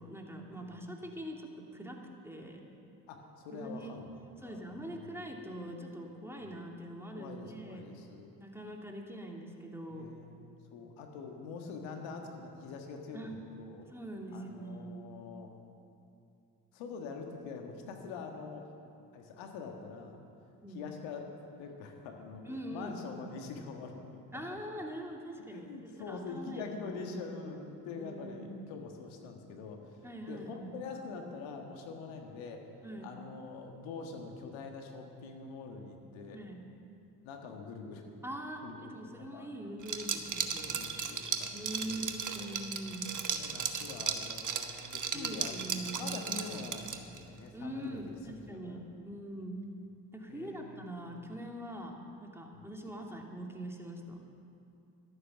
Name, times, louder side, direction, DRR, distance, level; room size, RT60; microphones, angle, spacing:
voice 1, 0.0-2.0 2.2-2.6 3.5-3.9 4.4-7.8 8.4-10.1 13.1-13.3 13.9-15.1 20.6-20.9 22.4-23.0 24.3-25.7 26.0-27.0 28.0-28.6 30.0-30.7 32.8-33.1 36.3-36.6 38.2-40.8 41.5-43.0 45.1-46.2 47.5-49.6 50.1-54.2, right 1 dB, 5° right, 0 dB, 2.6 m, -43 dB
voice 2, 3.1-4.2 4.4-5.1 6.4-6.5 7.1-8.3 9.9-10.4 10.7-13.9 14.3-15.5 16.7-18.7 19.1-20.2 20.7-21.3 21.6-22.4 22.7-24.2 25.5-32.6 33.0-36.4 37.2-38.0 38.6-39.5 40.7-42.0 42.4-42.6 43.1-45.5 46.0-48.8 49.4-49.5 50.3-50.9 52.5-52.7, left 4 dB, 70° left, 3 dB, 1.7 m, -45 dB
Liquid, 39.8-47.2, right 6 dB, 40° right, 1.3 m, -36 dB
14.0 x 12.0 x 6.0 m, 2.6 s
hypercardioid pair, 45°, 47 cm